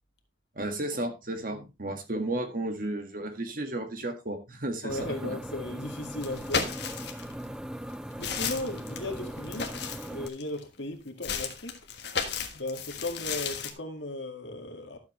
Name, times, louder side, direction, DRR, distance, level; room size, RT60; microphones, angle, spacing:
voice 1, 0.6-5.4, right 1 dB, 50° right, 1.7 m, -33 dB
voice 2, 4.8-6.8 8.2-11.8 12.5-15.0, left 2 dB, 80° left, 2.0 m, -36 dB
sound 1, 4.9-10.3, right 1 dB, 5° right, 0.4 m, -39 dB
sound 2, 6.2-7.3 7.8-10.6 11.2-13.7, left 6 dB, 65° left, 1.5 m, -34 dB
12.0 x 7.4 x 3.1 m
head